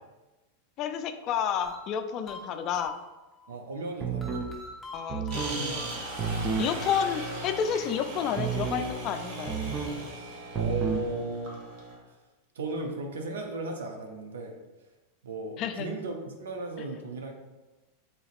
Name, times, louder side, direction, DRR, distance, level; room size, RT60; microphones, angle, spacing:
voice 1, 0.8-3.0 4.9-5.9 6.6-9.6 15.6-15.9, left 8 dB, 40° left, 8 dB, 0.3 m, -30 dB
sound 1, 1.6-3.4 4.2-6.5, left 2 dB, 5° right, 1.0 m, -45 dB
voice 2, 3.5-4.5 5.5-6.0 6.5-6.7 10.5-11.6 12.6-14.6 15.2-17.4, right 2 dB, 70° right, 3 dB, 0.6 m, -36 dB
sound 2, 4.0-4.5 5.1-5.6 6.2-6.7 8.4-8.9 9.5-10.0 10.6-11.1, right 5 dB, 30° right, 0.6 m, -30 dB
sound 3, 5.3-12.0, right 2 dB, 55° right, 1.0 m, -38 dB
3.9 x 3.9 x 2.5 m, 1.1 s
figure-of-eight pair, 90°, 0 cm